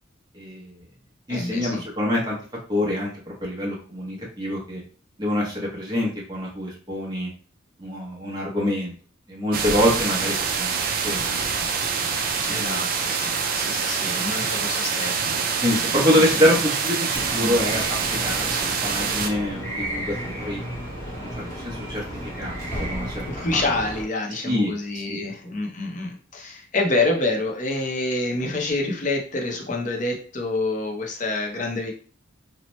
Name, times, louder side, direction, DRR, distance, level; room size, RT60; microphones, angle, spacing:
voice 1, 0.3-0.7 1.3-2.4 2.7-4.8 5.2-7.3 7.8-8.9 9.3-11.3 12.5-12.8 15.6-20.6 21.2-22.0 22.4-23.2 23.5-23.7 24.4-25.2, left 1 dB, 20° right, -4 dB, 0.7 m, -25 dB
voice 2, 1.3-1.9 12.5-15.2 15.4-15.6 16.4-16.5 17.4-17.5 23.3-31.9, left 2 dB, 40° left, 0 dB, 0.6 m, -27 dB
sound 1, 9.5-19.3, right 5 dB, 45° right, 0.3 m, -25 dB
sound 2, 17.1-24.0, equal, 15° left, 1.0 m, -33 dB
2.8 x 2.0 x 3.0 m, 0.41 s
head